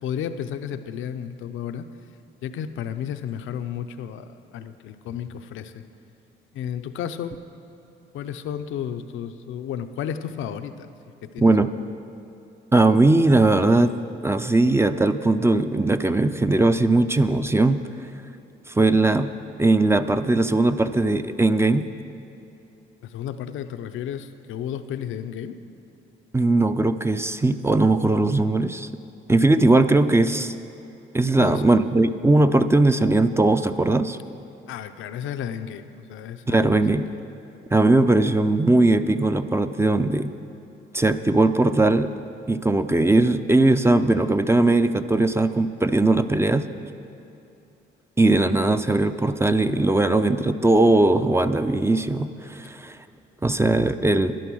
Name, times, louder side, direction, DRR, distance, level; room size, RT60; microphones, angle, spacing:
voice 1, 0.0-1.9 2.4-5.8 6.5-7.3 8.1-10.9 11.2-11.5 23.0-25.6 31.3-31.7 34.7-37.2, left 9 dB, 80° left, 9 dB, 0.7 m, -33 dB
voice 2, 11.4-11.7 12.7-13.9 14.2-17.8 18.7-19.3 19.6-21.8 26.3-28.9 29.3-30.6 31.1-34.2 36.5-37.0 37.7-40.3 40.9-42.1 42.5-46.7 48.2-53.0 53.4-54.3, right 2 dB, 15° right, 10 dB, 0.4 m, -19 dB
11.5 x 11.0 x 6.2 m, 2.8 s
cardioid pair, 90°, 20 cm